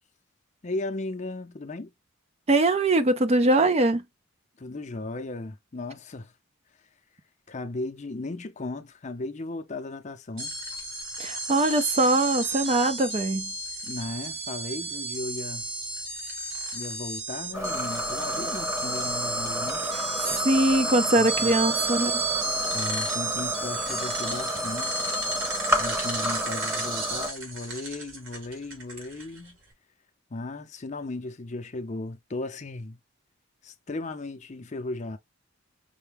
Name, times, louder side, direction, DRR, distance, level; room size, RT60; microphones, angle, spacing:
voice 1, 0.6-1.9 4.6-6.3 7.5-10.5 13.8-15.7 16.7-19.9 21.2-21.6 22.7-25.2 25.8-29.6 30.3-33.0 33.6-35.2, left 2 dB, 35° left, 0.5 m, -36 dB
voice 2, 2.5-4.0 11.2-13.5 19.8-22.2, right 2 dB, 30° right, 0.4 m, -22 dB
sound 1, 10.4-29.5, right 2 dB, 85° right, 2.0 m, -32 dB
sound 2, 17.5-27.3, equal, 10° right, 0.9 m, -31 dB
5.5 x 2.2 x 3.3 m
head